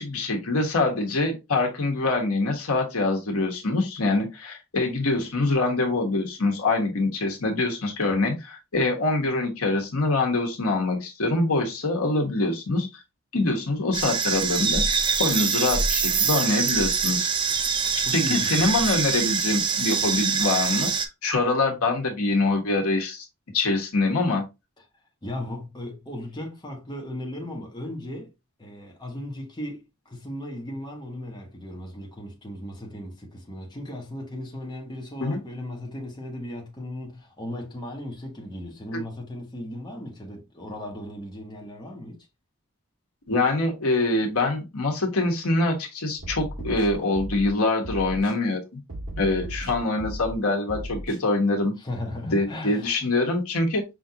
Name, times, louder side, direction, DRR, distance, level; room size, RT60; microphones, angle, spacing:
voice 1, 0.0-12.9 13.3-14.8 15.2-17.3 18.1-20.9 21.2-23.3 23.5-24.5 35.2-35.4 38.9-39.0 43.3-48.6 49.2-51.7 52.2-53.8, left 2 dB, 90° left, 1.2 m, -24 dB
sound 1, 13.9-21.1, right 6 dB, 20° right, 0.4 m, -24 dB
voice 2, 18.0-18.8 25.2-28.3 28.6-42.3 51.8-52.9, left 1 dB, 20° left, 1.0 m, -36 dB
sound 2, 46.2-47.5 47.8-48.3 48.9-50.4 50.7-51.2, right 1 dB, 70° right, 1.7 m, -35 dB
5.6 x 2.5 x 2.8 m
head